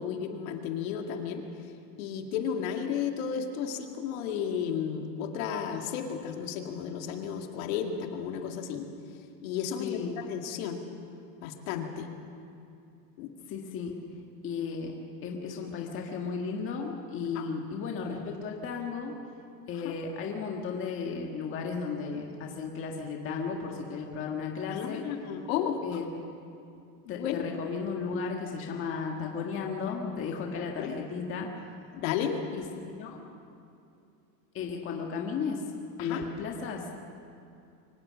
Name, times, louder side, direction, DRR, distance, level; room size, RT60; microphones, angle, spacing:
voice 1, 0.0-1.4 2.0-8.9 9.4-10.8 11.4-12.1 13.2-13.3 17.3-17.5 19.8-19.9 24.7-25.8 27.1-27.3 30.8-31.0 31.9-32.4 36.0-36.3, left 8 dB, 55° left, 3 dB, 2.3 m, -33 dB
voice 2, 9.8-10.2 13.5-14.0 14.4-14.9 15.2-19.1 19.7-25.0 25.8-26.1 27.1-31.7 32.5-33.2 34.5-35.6 36.0-37.0, left 5 dB, 25° left, 1 dB, 1.7 m, -34 dB
24.5 x 18.5 x 7.5 m, 2.5 s
supercardioid pair, 165°, 48 cm